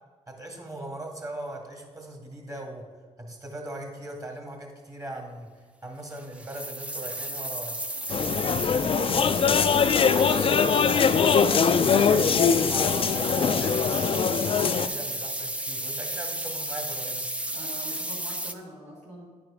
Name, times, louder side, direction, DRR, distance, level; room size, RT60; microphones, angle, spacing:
voice 1, 0.3-2.8 3.2-5.5 5.8-7.8 8.3-11.3 11.6-17.3, right 1 dB, 25° right, 2 dB, 1.9 m, -39 dB
sound 1, 6.1-18.5, right 1 dB, 10° right, 0.6 m, -33 dB
sound 2, 8.1-14.9, left 6 dB, 45° left, 0.4 m, -22 dB
voice 2, 17.5-19.3, right 1 dB, 70° right, -6 dB, 1.6 m, -43 dB
9.4 x 4.9 x 4.9 m, 1.4 s
supercardioid pair, 55°, 13 cm